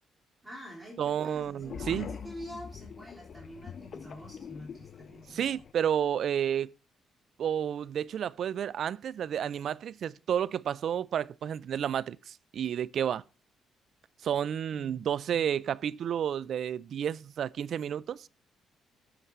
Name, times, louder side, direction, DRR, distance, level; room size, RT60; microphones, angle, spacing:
voice 1, 0.4-5.6 14.7-15.5, left 1 dB, 15° right, 3.5 m, -47 dB
voice 2, 1.0-2.1 5.3-6.7 7.4-13.2 14.2-18.3, right 9 dB, 65° right, 0.4 m, -31 dB
sound 1, 1.3-5.7, left 6 dB, 50° left, 0.6 m, -44 dB
7.9 x 6.9 x 4.7 m
cardioid pair, 90°, 0 cm